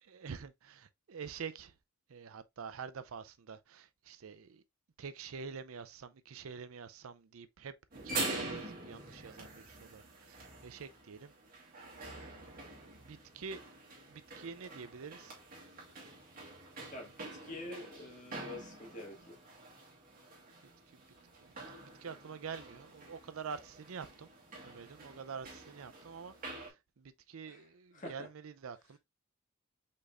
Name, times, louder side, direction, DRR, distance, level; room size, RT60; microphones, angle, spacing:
voice 1, 0.0-1.7 2.1-4.6 5.0-7.7 8.0-11.3 12.1-13.6 14.1-15.4 17.5-17.7 20.9-21.0 22.0-24.3 24.6-29.0, right 6 dB, 70° right, 0.5 m, -47 dB
sound 1, 7.9-26.7, right 2 dB, 40° right, 2.4 m, -46 dB
voice 2, 16.9-19.4 27.5-27.6 27.9-28.3, left 1 dB, 35° left, 1.8 m, -46 dB
5.3 x 4.1 x 2.4 m
head